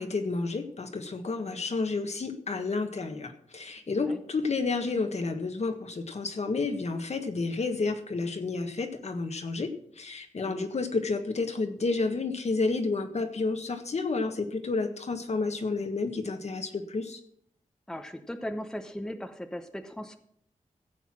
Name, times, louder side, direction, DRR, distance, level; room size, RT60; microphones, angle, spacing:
voice 1, 0.0-17.2, left 3 dB, 55° left, 6 dB, 1.5 m, -30 dB
voice 2, 3.9-4.2 10.4-10.7 17.9-20.2, left 1 dB, 5° left, 7 dB, 0.9 m, -38 dB
16.0 x 8.0 x 6.2 m, 0.67 s
wide cardioid pair, 135°, 14 cm